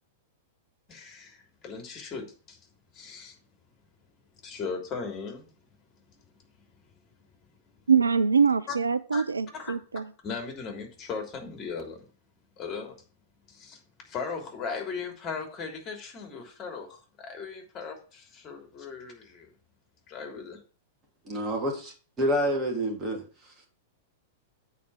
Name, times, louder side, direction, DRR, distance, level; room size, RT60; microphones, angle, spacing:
voice 1, 0.9-2.6 2.9-3.3 4.4-5.5 6.1-6.2 8.7-8.8 9.1-9.2 9.5-12.0 12.6-12.9 13.5-13.8 14.1-19.5 20.1-20.6, left 5 dB, 30° left, 3.2 m, -38 dB
voice 2, 7.9-10.0, right 6 dB, 80° right, 0.5 m, -23 dB
voice 3, 21.2-23.2, equal, 25° right, 3.1 m, -28 dB
8.5 x 4.7 x 7.5 m
figure-of-eight pair, 100°, 0 cm